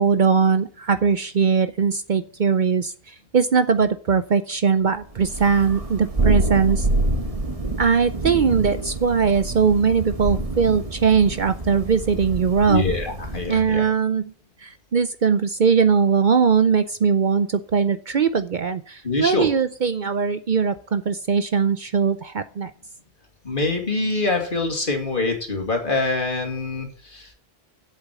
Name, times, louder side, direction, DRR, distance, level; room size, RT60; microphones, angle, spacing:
voice 1, 0.0-6.9 7.8-12.8 13.5-14.2 14.6-22.7, right 6 dB, 55° right, 11 dB, 0.7 m, -20 dB
Thunder, 5.2-13.6, right 2 dB, 35° right, 1.8 m, -27 dB
voice 2, 12.7-13.8 19.0-19.5 23.4-27.3, left 3 dB, 50° left, 3 dB, 2.7 m, -24 dB
8.1 x 7.5 x 8.2 m, 0.42 s
omnidirectional pair, 1.1 m